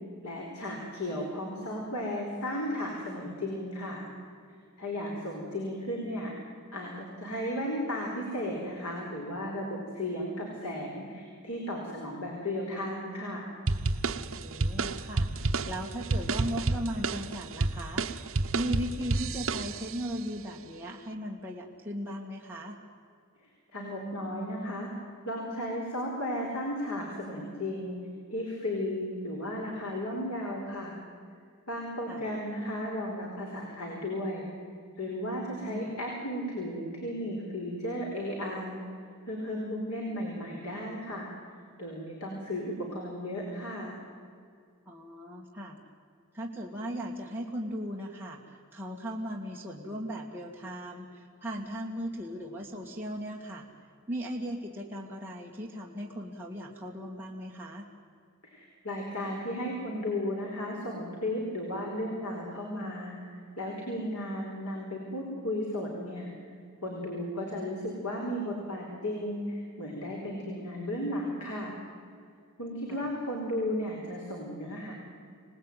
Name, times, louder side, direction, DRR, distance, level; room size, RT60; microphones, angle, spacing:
voice 1, 0.2-4.0 4.8-6.3 6.7-13.4 23.7-24.9 25.2-28.0 28.3-31.0 31.7-34.5 35.0-38.8 39.3-41.3 41.8-43.9 58.5-63.2 63.6-66.3 66.8-71.7 72.6-74.9, left 1 dB, 85° left, -1 dB, 4.6 m, -34 dB
voice 2, 5.0-5.6 14.4-18.0 18.5-22.8 32.1-32.2 35.5-35.9 44.9-45.8 46.3-53.6 54.1-57.9 72.9-73.1, equal, 10° right, -3 dB, 2.3 m, -38 dB
sound 1, 13.7-20.1, right 3 dB, 65° right, 1.0 m, -30 dB
26.5 x 19.0 x 9.4 m, 2.3 s
head